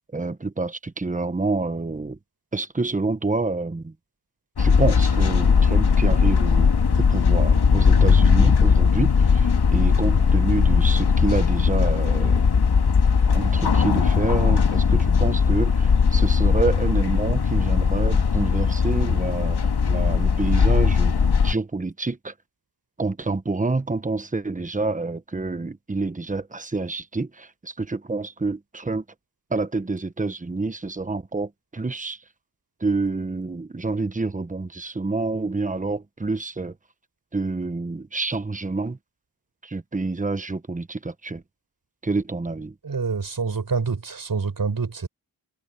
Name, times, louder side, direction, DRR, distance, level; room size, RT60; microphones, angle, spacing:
voice 1, 0.1-2.2 2.5-3.9 4.6-6.7 7.1-12.4 13.3-19.6 19.9-21.2 21.4-22.3 23.0-29.0 29.5-32.2 32.8-36.7 37.3-39.0 39.6-41.4 42.0-42.7, right 3 dB, 20° right, 1.2 m, -28 dB
sound 1, 4.6-21.5, left 5 dB, 70° left, 2.3 m, -19 dB
voice 2, 42.8-45.1, right 5 dB, 55° right, 6.0 m, -26 dB
wide cardioid pair, 100°, 41 cm